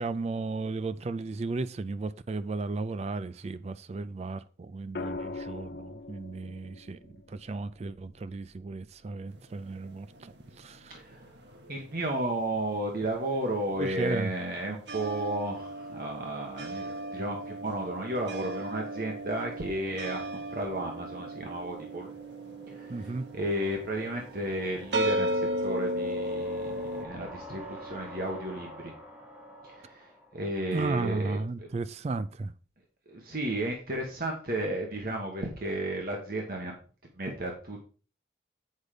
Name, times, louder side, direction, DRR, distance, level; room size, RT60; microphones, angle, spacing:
voice 1, 0.0-10.3 10.6-11.0 13.8-14.3 22.9-23.2 30.7-32.5, right 3 dB, 35° right, 0.3 m, -34 dB
sound 1, 4.9-9.1 10.8-11.2, left 3 dB, 60° left, 0.6 m, -42 dB
sound 2, 9.4-12.0 12.3-27.0, right 1 dB, 70° right, 1.2 m, -36 dB
voice 2, 10.9-11.3 11.7-22.1 22.7-28.9 29.6-31.7 33.1-36.7 37.1-37.8, right 1 dB, 50° right, 1.4 m, -33 dB
sound 3, 15.8-30.9, equal, 10° right, 1.9 m, -49 dB
8.2 x 5.2 x 4.9 m
head